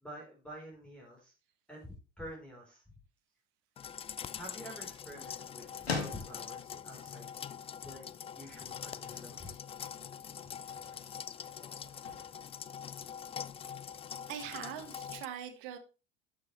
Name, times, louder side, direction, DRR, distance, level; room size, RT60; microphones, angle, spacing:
voice 1, 0.0-1.3 1.7-2.8 4.3-7.3 7.8-9.6, equal, 5° left, 4.1 m, -48 dB
sound 1, 3.8-13.6, left 4 dB, 90° left, 1.9 m, -46 dB
sound 2, 3.8-15.3, left 8 dB, 20° left, 0.4 m, -44 dB
voice 2, 14.3-15.8, right 10 dB, 60° right, 1.7 m, -42 dB
12.0 x 6.1 x 3.3 m
hypercardioid pair, 75°, 31 cm